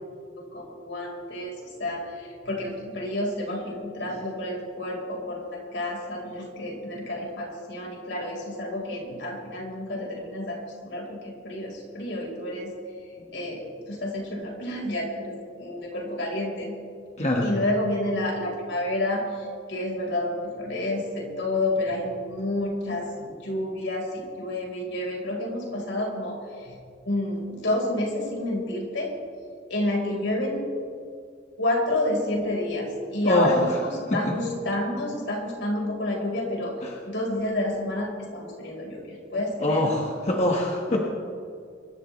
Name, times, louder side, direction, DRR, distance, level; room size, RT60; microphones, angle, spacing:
voice 1, 0.5-12.7 13.1-16.7 17.4-29.1 29.7-30.7 31.6-36.7 37.0-40.0, left 1 dB, 75° left, -2 dB, 4.3 m, -29 dB
voice 2, 39.6-40.0 40.3-41.0, left 1 dB, 35° left, -1 dB, 1.4 m, -23 dB
24.0 x 12.5 x 3.2 m, 2.3 s
head